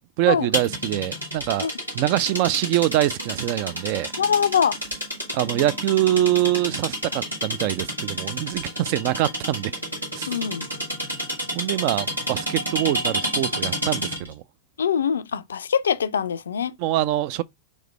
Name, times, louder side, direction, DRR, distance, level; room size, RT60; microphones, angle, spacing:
voice 1, 0.2-1.7 1.9-4.1 5.3-9.7 10.1-10.3 11.5-14.4 16.8-17.4, right 14 dB, 45° right, 0.3 m, -24 dB
sound 1, 0.5-14.3, equal, 85° right, 1.6 m, -30 dB
voice 2, 4.2-4.8 10.3-10.7 14.8-16.7, left 7 dB, 70° left, 0.3 m, -23 dB
4.2 x 3.2 x 3.2 m
figure-of-eight pair, 90°, 0 cm